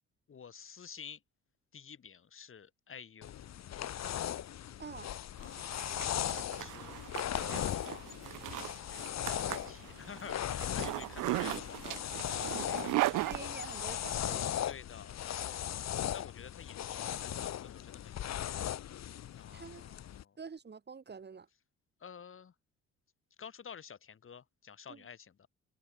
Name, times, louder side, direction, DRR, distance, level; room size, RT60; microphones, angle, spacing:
voice 1, 0.3-1.2 1.7-3.4 3.8-4.5 5.4-8.1 8.8-13.4 14.6-18.5 19.3-20.4 22.0-22.5 23.4-25.5, left 7 dB, 45° left, 2.6 m, -51 dB
sound 1, 3.2-20.2, left 11 dB, 60° left, 1.4 m, -38 dB
Zipper (clothing), 5.4-14.1, right 18 dB, 85° right, 0.7 m, -38 dB
voice 2, 13.2-14.5 19.5-19.8 20.4-21.5 24.9-25.0, right 5 dB, 35° right, 2.5 m, -47 dB
cardioid pair, 90°, 30 cm